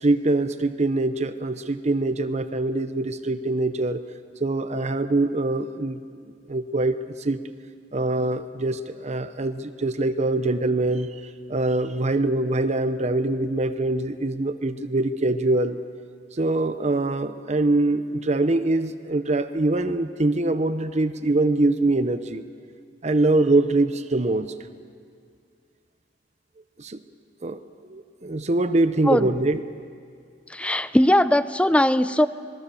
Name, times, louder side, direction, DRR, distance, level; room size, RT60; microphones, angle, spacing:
voice 1, 0.0-4.0 4.4-6.0 6.3-7.4 7.9-11.1 11.5-15.8 16.3-22.4 23.0-24.5 26.8-27.0 27.4-27.6 27.9-29.6, right 2 dB, 40° right, 10 dB, 0.8 m, -23 dB
voice 2, 30.5-32.3, left 1 dB, 5° left, 14 dB, 0.5 m, -19 dB
26.5 x 20.5 x 7.0 m, 2.3 s
head